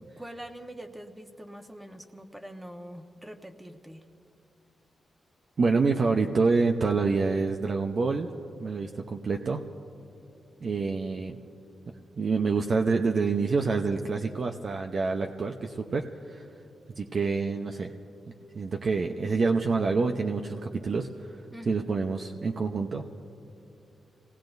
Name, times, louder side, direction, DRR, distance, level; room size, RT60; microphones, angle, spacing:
voice 1, 0.0-4.0 21.5-21.9, right 1 dB, 10° right, 5 dB, 1.2 m, -44 dB
voice 2, 5.6-8.3 8.6-9.6 10.6-11.4 12.2-16.4 17.0-17.9 18.5-21.3 21.7-23.1, right 4 dB, 55° right, 3 dB, 0.7 m, -27 dB
26.5 x 18.5 x 2.6 m, 2.6 s
cardioid pair, 70°, 0 cm